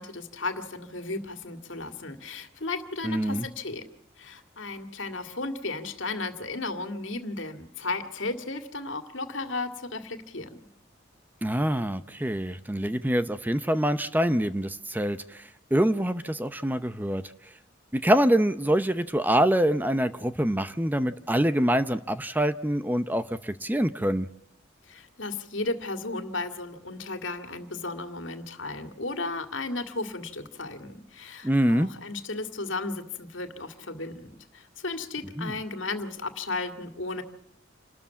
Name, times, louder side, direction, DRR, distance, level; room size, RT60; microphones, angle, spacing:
voice 1, 0.0-3.8 4.2-10.6 24.9-37.2, left 3 dB, 80° left, 8 dB, 2.1 m, -34 dB
voice 2, 3.0-3.5 11.4-17.2 17.9-24.3 31.4-31.9 35.4-35.6, right 1 dB, 10° right, 12 dB, 0.7 m, -25 dB
28.5 x 13.0 x 7.1 m, 0.74 s
head